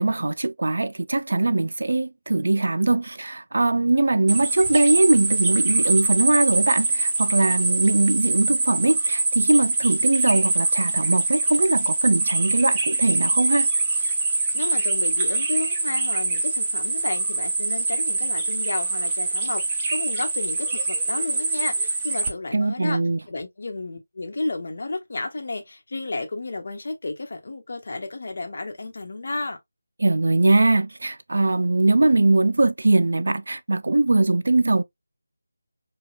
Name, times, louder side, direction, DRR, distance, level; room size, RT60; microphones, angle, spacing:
voice 1, 0.0-13.7 22.5-23.2 30.0-34.8, right 2 dB, 65° right, 0.4 m, -21 dB
sound 1, 4.3-22.3, right 3 dB, 20° right, 0.7 m, -24 dB
voice 2, 14.5-23.0 23.3-29.6, left 2 dB, 55° left, 1.0 m, -32 dB
5.0 x 2.3 x 2.4 m
figure-of-eight pair, 160°, 0 cm